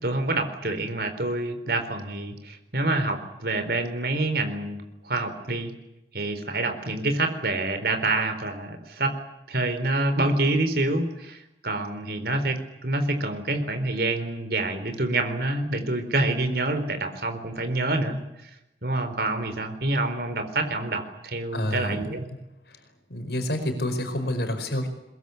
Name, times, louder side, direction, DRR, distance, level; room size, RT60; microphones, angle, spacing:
voice 1, 0.0-5.7 6.1-9.2 9.5-11.4 11.6-18.2 18.8-22.3, right 2 dB, 60° right, 8 dB, 4.2 m, -27 dB
voice 2, 21.5-22.0 23.1-24.9, left 1 dB, 70° left, 7 dB, 5.0 m, -28 dB
22.5 x 22.0 x 9.6 m, 0.89 s
head